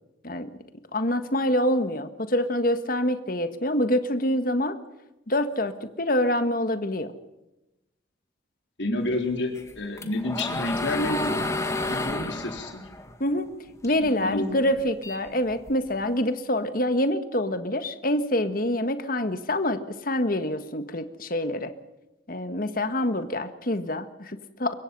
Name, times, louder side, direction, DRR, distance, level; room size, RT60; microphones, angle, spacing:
voice 1, 0.9-4.8 5.3-7.1 13.2-13.5 13.8-21.7 22.3-24.7, left 1 dB, 45° left, 9 dB, 1.6 m, -26 dB
voice 2, 8.8-11.6 11.9-12.8 14.0-14.6, left 1 dB, 70° left, 3 dB, 4.2 m, -29 dB
sound 1, 9.6-14.1 14.5-16.0, left 2 dB, 15° left, 1.8 m, -31 dB
24.0 x 22.0 x 5.5 m, 0.96 s
head